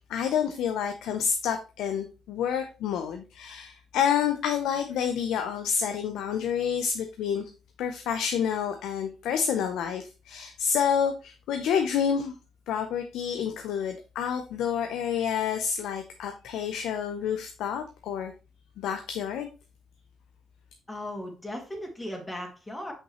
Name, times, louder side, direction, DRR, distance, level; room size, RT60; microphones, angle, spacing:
voice 1, 0.1-7.5 7.8-12.3 12.7-18.3 18.8-19.5, left 8 dB, 85° left, 6 dB, 0.6 m, -28 dB
voice 2, 20.9-22.9, left 1 dB, 15° left, 3 dB, 1.9 m, -37 dB
6.0 x 5.4 x 3.0 m, 0.32 s
cardioid pair, 90°, 0 cm